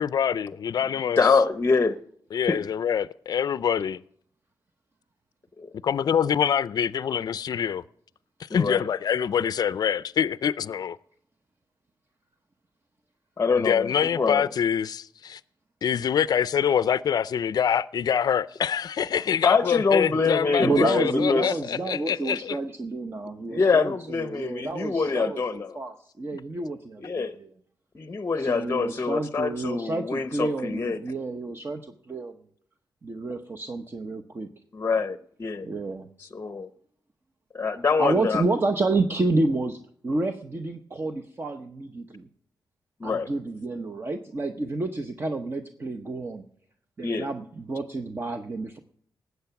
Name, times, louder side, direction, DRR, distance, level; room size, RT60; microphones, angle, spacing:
voice 1, 0.0-1.2 2.3-4.0 5.8-7.8 8.5-11.0 13.6-15.4 15.8-22.6, left 8 dB, 55° left, 0.4 m, -25 dB
voice 2, 1.2-2.0 2.5-2.6 5.6-5.7 8.5-8.9 13.4-14.4 19.4-21.6 23.5-25.8 27.0-27.4 27.9-31.0 34.7-35.7 36.2-36.7 37.5-38.4 43.0-43.3 47.0-47.3, left 4 dB, 30° left, 0.7 m, -25 dB
voice 3, 20.6-27.5 28.4-32.3 33.0-34.5 35.6-36.1 38.0-42.3 43.0-46.4 47.0-48.8, right 2 dB, 30° right, 0.8 m, -29 dB
19.0 x 8.1 x 5.8 m
wide cardioid pair, 125°, 8 cm